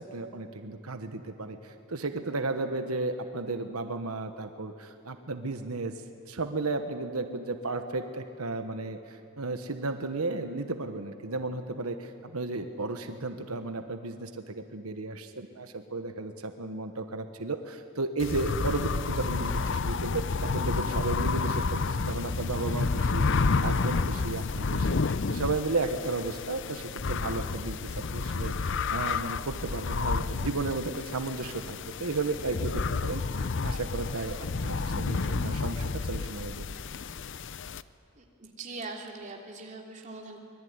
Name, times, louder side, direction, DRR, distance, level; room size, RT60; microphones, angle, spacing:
voice 1, 0.0-5.9 6.3-25.0 25.3-36.6, right 3 dB, 90° right, 7 dB, 1.3 m, -34 dB
sound 1, 18.2-37.8, left 4 dB, 60° left, 0.6 m, -30 dB
voice 2, 38.2-40.5, right 3 dB, 35° right, 1 dB, 3.1 m, -42 dB
25.0 x 21.5 x 9.6 m, 2.4 s
head